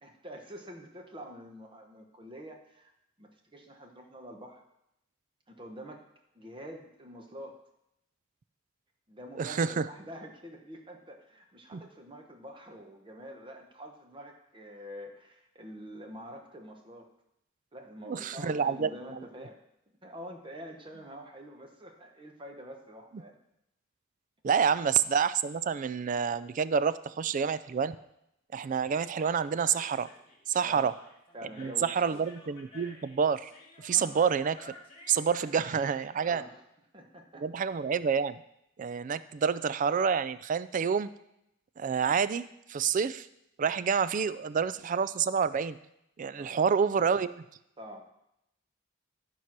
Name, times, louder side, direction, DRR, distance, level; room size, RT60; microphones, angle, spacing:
voice 1, 0.0-2.9 3.2-4.6 5.5-6.1 6.3-7.6 9.1-17.1 17.7-19.6 20.0-23.4 30.6-30.9 31.3-32.2 33.9-34.1 36.2-36.6 36.9-37.5 46.4-46.6 47.8-48.1, equal, 25° right, 3 dB, 1.1 m, -46 dB
voice 2, 9.4-9.9 11.7-11.8 18.1-18.9 24.4-28.0 28.5-30.1 30.5-30.9 31.6-33.5 33.8-34.7 35.1-36.4 37.3-38.4 38.8-41.1 41.8-43.3 43.6-45.8 46.2-47.3, right 6 dB, 40° right, 15 dB, 0.3 m, -28 dB
Human voice, 28.7-36.1, left 2 dB, 30° left, 1.9 m, -53 dB
12.0 x 4.7 x 6.0 m, 0.82 s
head